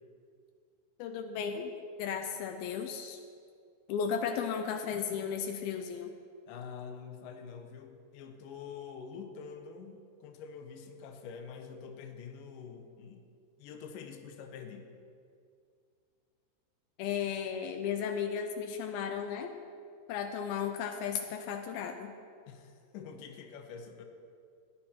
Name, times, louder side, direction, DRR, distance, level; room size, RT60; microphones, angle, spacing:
voice 1, 1.0-1.7 2.0-3.2 3.9-6.1 17.0-19.5 20.1-22.1, left 7 dB, 85° left, 5 dB, 2.5 m, -35 dB
voice 2, 6.5-13.2 13.6-14.9 22.5-24.0, left 6 dB, 70° left, 5 dB, 2.4 m, -46 dB
17.5 x 10.5 x 4.5 m, 2.3 s
omnidirectional pair, 4.5 m